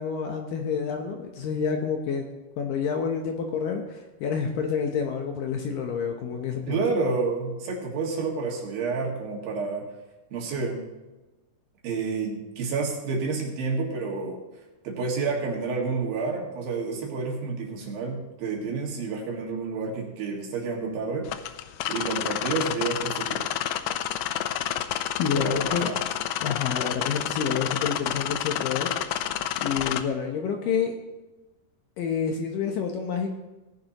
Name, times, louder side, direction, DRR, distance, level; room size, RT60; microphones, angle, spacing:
voice 1, 0.0-2.3 2.6-6.8 25.2-25.9 26.4-28.9 29.2-29.3 29.6-30.9 32.0-33.3, left 6 dB, 70° left, 3 dB, 2.3 m, -28 dB
voice 2, 6.7-9.9 10.3-10.8 11.8-14.4 14.8-21.3 21.9-23.4 25.3-26.0, right 4 dB, 65° right, -1 dB, 3.6 m, -29 dB
sound 1, 21.3-30.0, left 12 dB, 90° left, 2.0 m, -29 dB
18.5 x 10.5 x 3.0 m, 1.1 s
omnidirectional pair, 4.7 m